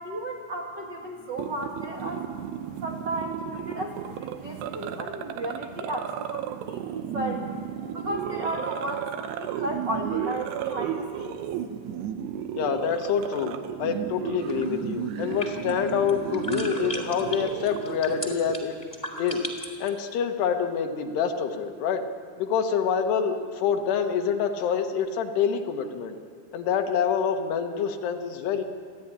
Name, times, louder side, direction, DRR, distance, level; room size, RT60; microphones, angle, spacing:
voice 1, 0.0-2.2 2.8-7.4 7.9-11.4, right 1 dB, 65° right, 0 dB, 1.1 m, -34 dB
sound 1, 1.4-18.6, right 9 dB, 80° right, 3.0 m, -34 dB
voice 2, 12.5-18.8 19.2-19.5 19.8-22.0 22.4-26.2 26.5-28.6, left 7 dB, 80° left, 5 dB, 3.3 m, -26 dB
sound 2, 14.4-19.9, left 1 dB, 10° left, 2.1 m, -37 dB
30.0 x 11.0 x 10.0 m, 2.1 s
omnidirectional pair, 4.7 m